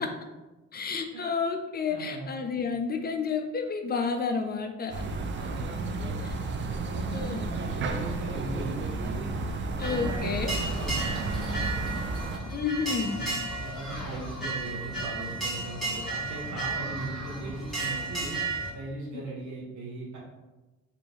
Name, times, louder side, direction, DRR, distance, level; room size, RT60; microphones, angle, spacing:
voice 1, 0.7-4.9 7.1-7.5 9.8-10.6 12.5-13.2 19.1-19.2, left 5 dB, 35° left, 5 dB, 0.4 m, -30 dB
voice 2, 1.9-2.4 5.4-6.2 6.7-9.3 9.8-10.3 10.7-12.0 13.1-18.4 18.7-20.2, right 2 dB, 70° right, -3 dB, 0.9 m, -38 dB
sound 1, 4.9-12.4, right 3 dB, 40° right, 0.4 m, -32 dB
sound 2, 9.8-18.7, right 2 dB, ahead, 1.4 m, -33 dB
3.3 x 2.6 x 3.0 m, 1.1 s
cardioid pair, 90°, 30 cm